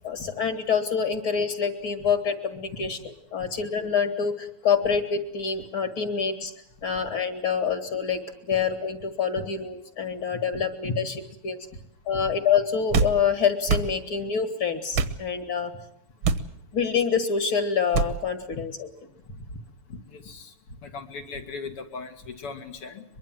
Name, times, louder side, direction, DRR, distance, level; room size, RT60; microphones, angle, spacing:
voice 1, 0.0-6.5 6.8-8.2 8.5-11.1 11.4-11.6 12.1-15.7 16.7-18.9, left 6 dB, 60° left, 8 dB, 2.8 m, -26 dB
voice 2, 10.3-10.9 12.1-12.2 19.9-20.5 20.8-23.0, left 4 dB, 85° left, 4 dB, 3.1 m, -38 dB
sound 1, 12.9-13.2 13.7-13.9 14.9-15.2 16.2-16.5 17.9-18.1, right 5 dB, 70° right, 2.0 m, -23 dB
23.0 x 23.0 x 7.6 m, 0.73 s
omnidirectional pair, 2.4 m